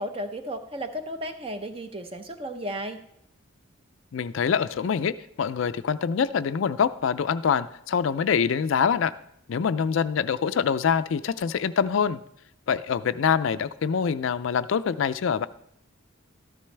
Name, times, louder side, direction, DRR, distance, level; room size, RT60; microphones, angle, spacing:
voice 1, 0.0-3.0, equal, 25° right, 7 dB, 0.8 m, -34 dB
voice 2, 4.1-9.1 9.5-12.2 12.7-15.5, left 7 dB, 70° left, 14 dB, 0.4 m, -25 dB
13.0 x 11.5 x 3.3 m, 0.76 s
head